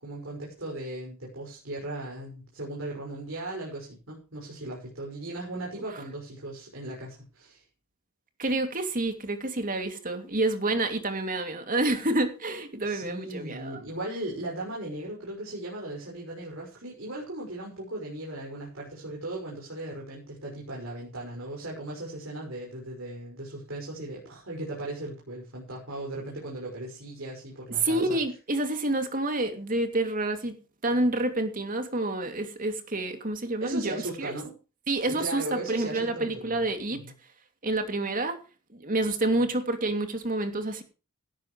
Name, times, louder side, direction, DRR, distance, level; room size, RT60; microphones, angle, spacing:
voice 1, 0.0-7.6 12.8-28.2 33.6-34.6 35.1-36.6 36.9-37.1, right 1 dB, 60° right, 6.0 m, -37 dB
voice 2, 8.4-13.8 27.8-30.6 30.8-33.9 34.2-34.3 34.9-37.0 37.6-38.4 38.7-40.8, right 2 dB, 40° right, 2.8 m, -28 dB
17.0 x 13.0 x 3.3 m
head